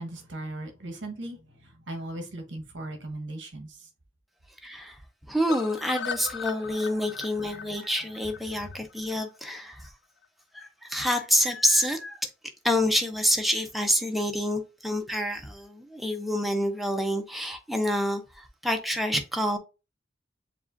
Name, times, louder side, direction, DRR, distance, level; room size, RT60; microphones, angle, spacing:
voice 1, 0.0-3.9 6.5-7.0 7.4-8.0, right 1 dB, 75° right, 1.1 m, -39 dB
voice 2, 4.6-5.0 5.3-9.9 10.5-12.2 12.6-19.6, equal, ahead, 0.6 m, -27 dB
sound 1, 5.5-9.5 9.8-9.9 10.2-10.3 10.6-10.7, left 6 dB, 65° left, 0.4 m, -38 dB
7.3 x 2.4 x 2.4 m
head